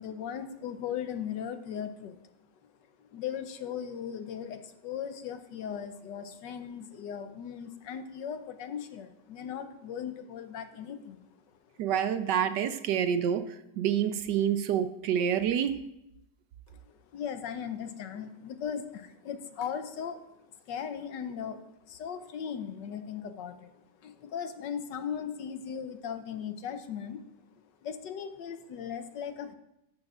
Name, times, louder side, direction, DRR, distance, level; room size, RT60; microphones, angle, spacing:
voice 1, 0.0-2.2 3.1-11.4 16.7-27.2 27.8-29.5, left 8 dB, 70° left, 9 dB, 1.3 m, -38 dB
voice 2, 11.8-15.8, right 9 dB, 70° right, 10 dB, 1.2 m, -28 dB
12.5 x 12.5 x 2.4 m, 0.85 s
omnidirectional pair, 2.0 m